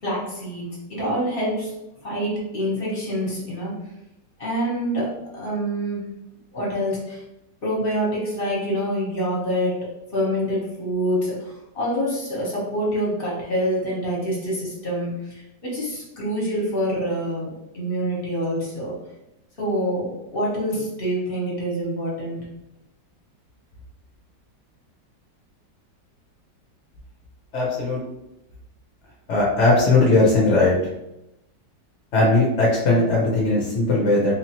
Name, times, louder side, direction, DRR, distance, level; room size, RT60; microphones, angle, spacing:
voice 1, 0.0-1.7 2.0-3.7 4.4-6.1 6.5-7.2 7.6-9.9 10.1-18.9 19.6-22.5, equal, 35° left, -5 dB, 1.3 m, -26 dB
voice 2, 27.5-28.0 29.3-30.7 32.1-34.3, left 2 dB, 55° left, -3 dB, 0.9 m, -18 dB
4.0 x 2.9 x 2.9 m, 0.90 s
omnidirectional pair, 1.9 m